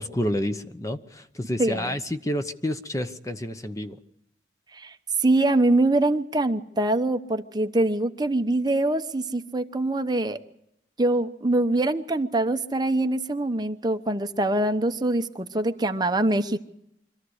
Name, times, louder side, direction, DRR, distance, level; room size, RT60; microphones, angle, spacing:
voice 1, 0.0-4.0, left 1 dB, 20° left, 9 dB, 0.9 m, -29 dB
voice 2, 1.6-2.0 4.7-10.4 11.0-16.6, right 2 dB, 25° right, 7 dB, 0.9 m, -24 dB
25.0 x 14.0 x 8.0 m, 0.79 s
head